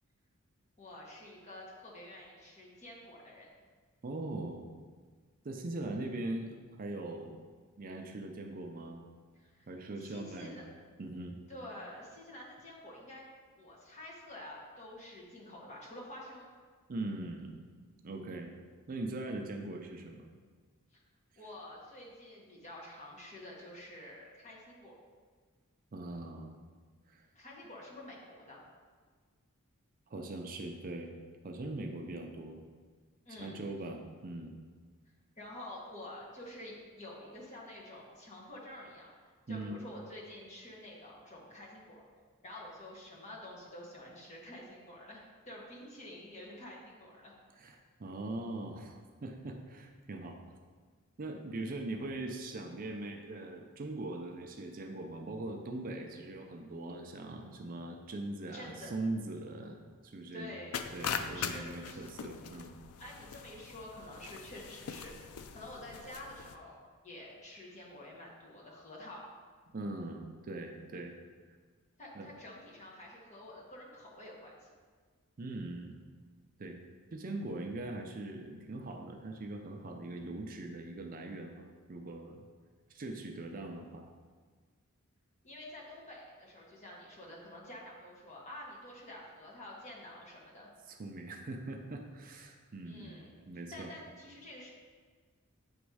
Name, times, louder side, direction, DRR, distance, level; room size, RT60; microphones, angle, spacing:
voice 1, 0.8-3.5 9.4-9.7 10.0-10.6 11.5-13.2 13.6-16.5 20.9-21.0 21.4-24.9 27.3-28.6 33.2-33.6 35.4-39.1 39.5-42.0 42.4-47.3 58.5-58.9 60.3-60.8 61.3-62.0 63.0-66.8 67.0-69.3 72.0-74.7 85.4-90.7 92.8-93.3 93.7-94.7, left 1 dB, 35° left, -3 dB, 1.3 m, -49 dB
voice 2, 4.0-4.7 5.4-7.4 7.8-9.0 9.7-10.6 11.0-11.4 16.9-17.6 18.0-18.5 18.9-20.3 25.9-26.6 27.1-27.3 30.1-31.1 31.4-32.6 33.4-34.6 39.5-39.8 47.6-50.6 51.2-60.5 60.9-62.8 69.7-71.2 71.5-71.6 72.1-72.3 75.4-76.0 76.6-76.8 77.1-82.4 82.9-84.1 90.9-93.1 93.5-93.9, right 2 dB, 40° right, 3 dB, 0.5 m, -41 dB
sound 1, 60.7-66.5, left 7 dB, 80° left, 0.4 m, -41 dB
8.0 x 3.1 x 4.8 m, 1.5 s
head